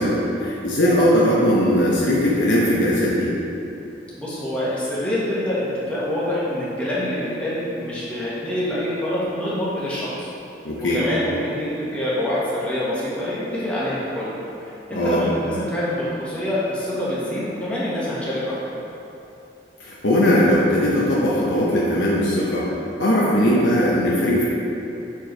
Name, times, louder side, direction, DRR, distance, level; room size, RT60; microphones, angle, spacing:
voice 1, 0.0-3.3 10.6-11.0 14.9-15.2 19.8-22.7 23.0-24.4, equal, 85° left, -6 dB, 1.0 m, -19 dB
voice 2, 4.2-10.3 10.9-14.3 14.6-18.7, left 1 dB, 5° left, -9 dB, 1.5 m, -26 dB
7.0 x 4.6 x 4.6 m, 2.9 s
head